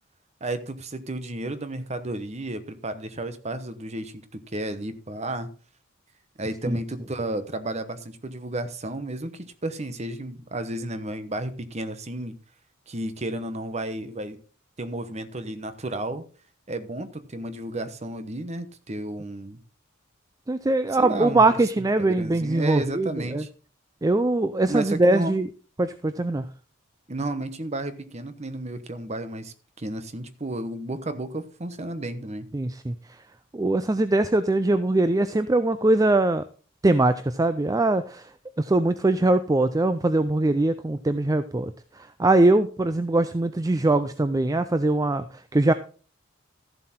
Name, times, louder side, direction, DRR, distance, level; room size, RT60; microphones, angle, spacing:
voice 1, 0.4-5.5 6.4-12.4 12.9-14.4 14.8-16.2 16.7-19.6 21.0-21.6 22.0-23.5 24.7-25.3 27.1-32.5, right 1 dB, 35° right, 1.0 m, -32 dB
voice 2, 20.5-23.5 24.0-25.5 25.8-26.5 32.5-32.9 33.5-36.4 36.8-38.3 38.6-45.7, right 2 dB, 15° right, 0.4 m, -22 dB
13.5 x 7.4 x 4.3 m
head